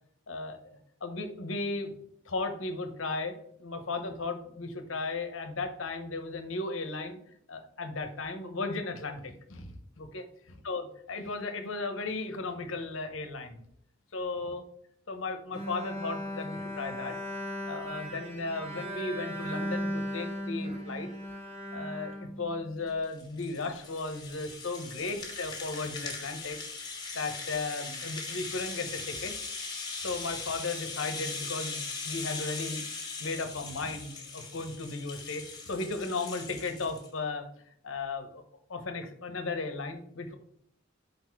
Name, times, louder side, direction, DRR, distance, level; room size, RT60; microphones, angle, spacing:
voice 1, 0.3-1.9 2.3-7.2 7.5-10.3 10.6-13.6 14.1-14.6 15.1-17.2 17.7-21.1 21.7-26.6 27.1-29.3 30.0-32.8 33.2-37.4 37.8-38.4 38.7-40.3, left 3 dB, 75° left, 7 dB, 1.0 m, -35 dB
Bowed string instrument, 15.5-22.9, equal, 35° right, 1.2 m, -37 dB
Rattle (instrument), 22.9-37.1, left 4 dB, 20° left, 1.5 m, -40 dB
5.1 x 4.2 x 4.6 m, 0.67 s
head